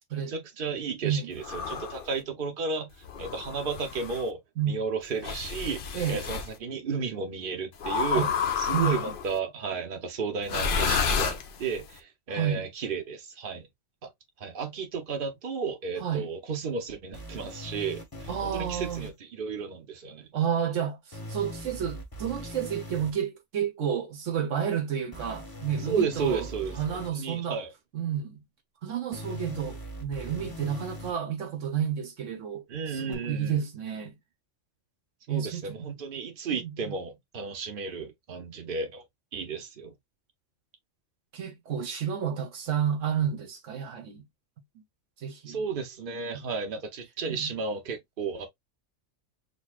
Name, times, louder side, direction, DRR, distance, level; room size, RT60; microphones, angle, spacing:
voice 1, 0.3-2.9 3.2-8.3 8.6-13.7 14.4-20.3 25.9-26.8 27.2-27.7 32.7-33.6 35.3-39.0 39.3-39.9 45.5-48.5, right 5 dB, 45° right, 1.0 m, -33 dB
sound 1, 1.4-2.1 3.0-4.2 5.2-6.5 7.8-9.3 10.4-11.9, left 6 dB, 55° left, 0.6 m, -30 dB
voice 2, 8.7-9.0 12.3-12.6 16.0-16.3 18.3-19.1 20.3-26.5 26.8-27.6 27.9-28.4 28.8-34.1 35.3-35.9 36.5-36.9 41.3-44.2 45.2-45.6 46.3-46.4 47.3-47.5, right 8 dB, 70° right, 1.2 m, -31 dB
sound 2, 17.1-19.1 21.1-23.1 25.1-27.1 29.1-31.1 33.1-33.2, equal, 20° left, 0.9 m, -40 dB
6.6 x 2.2 x 2.3 m
omnidirectional pair, 1.3 m